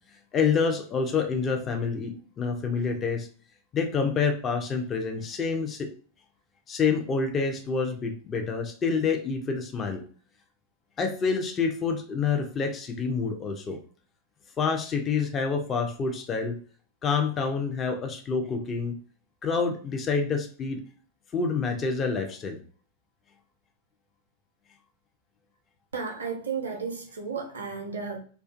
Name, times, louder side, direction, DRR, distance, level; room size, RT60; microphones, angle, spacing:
voice 1, 0.3-3.3 3.7-5.9 6.7-10.0 11.0-13.8 14.6-16.6 17.0-19.0 19.4-20.8 21.3-22.6, left 5 dB, 25° left, 4 dB, 0.4 m, -27 dB
voice 2, 25.9-28.2, right 5 dB, 70° right, 2 dB, 0.4 m, -33 dB
2.4 x 2.2 x 2.4 m, 0.43 s
figure-of-eight pair, 90°, 0 cm